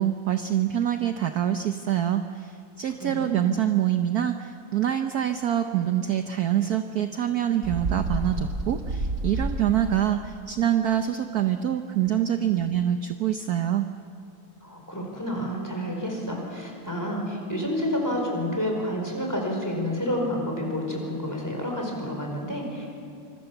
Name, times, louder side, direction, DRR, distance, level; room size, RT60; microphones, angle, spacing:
voice 1, 0.0-13.9, right 10 dB, 60° right, 7 dB, 1.2 m, -25 dB
voice 2, 3.0-3.4 14.6-22.9, left 1 dB, 10° left, 0 dB, 4.8 m, -29 dB
Bird, 7.6-10.1, right 2 dB, 40° right, 2.2 m, -29 dB
25.5 x 24.5 x 7.1 m, 2.4 s
omnidirectional pair, 2.1 m